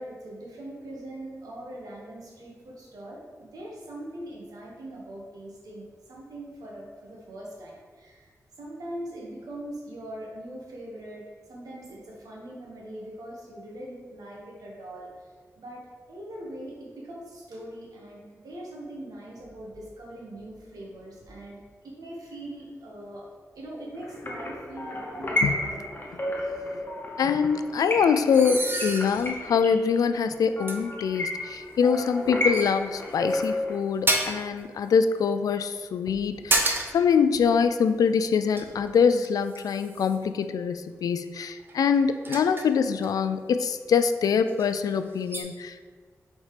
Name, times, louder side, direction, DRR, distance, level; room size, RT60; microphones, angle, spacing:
voice 1, 0.0-8.3 8.6-15.3 15.5-23.3 23.5-26.1, right 1 dB, 85° right, -3 dB, 1.5 m, -41 dB
sound 1, 24.0-33.8, left 1 dB, 35° left, 0.9 m, -32 dB
voice 2, 27.2-46.0, left 6 dB, 90° left, 10 dB, 0.3 m, -24 dB
sound 2, 28.3-29.5 30.0-30.1 30.7-30.8 32.0-32.2 32.5-33.5 34.1-34.5 36.0-37.1 37.3-37.5 38.3-40.3 41.7-43.1 44.1-44.2 44.5-44.8 45.3-45.4, right 2 dB, 35° right, 0.8 m, -30 dB
4.8 x 4.2 x 5.0 m, 1.5 s
cardioid pair, 65°, 6 cm